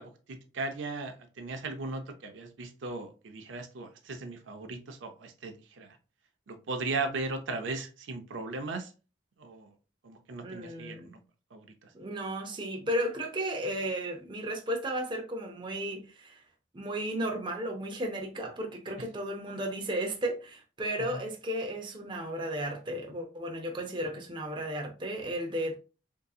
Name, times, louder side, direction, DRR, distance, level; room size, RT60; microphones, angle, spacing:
voice 1, 0.0-6.0 6.5-8.9 9.4-9.7 10.0-11.2 11.5-11.9 21.0-21.2, right 3 dB, 80° right, 0.5 m, -37 dB
voice 2, 10.4-11.2 11.9-16.4 16.7-25.7, right 1 dB, 25° right, 0.6 m, -34 dB
3.7 x 2.7 x 2.3 m
head